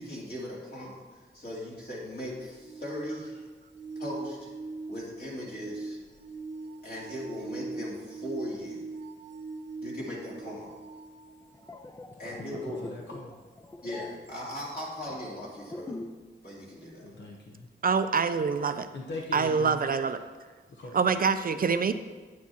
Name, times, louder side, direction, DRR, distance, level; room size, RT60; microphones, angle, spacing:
voice 1, 0.0-3.4 3.9-4.5 4.9-6.0 6.8-8.8 9.8-10.7 12.2-12.8 13.8-15.9 16.4-17.1, left 1 dB, 55° left, -6 dB, 3.0 m, -39 dB
sound 1, 2.2-11.9 14.3-14.4, right 3 dB, 85° right, 0.8 m, -41 dB
sound 2, 11.4-16.3 16.6-16.8, left 2 dB, 15° left, 0.4 m, -44 dB
voice 2, 12.3-13.4 17.0-17.7 18.9-19.9 20.7-21.0, left 2 dB, 75° left, -1 dB, 0.9 m, -41 dB
voice 3, 17.8-18.9 19.3-20.2 20.9-21.9, right 5 dB, 50° right, 10 dB, 0.4 m, -25 dB
9.4 x 9.4 x 2.9 m, 1.4 s
wide cardioid pair, 135°, 19 cm